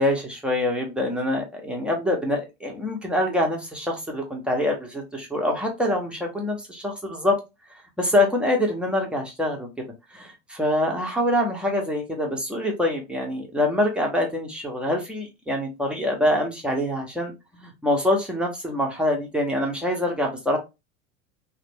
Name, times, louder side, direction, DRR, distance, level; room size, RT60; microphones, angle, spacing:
voice 1, 0.0-7.4 8.0-9.7 10.1-20.6, left 1 dB, 5° right, 0 dB, 0.7 m, -25 dB
3.2 x 2.1 x 3.2 m, 0.24 s
figure-of-eight pair, 85°, 40 cm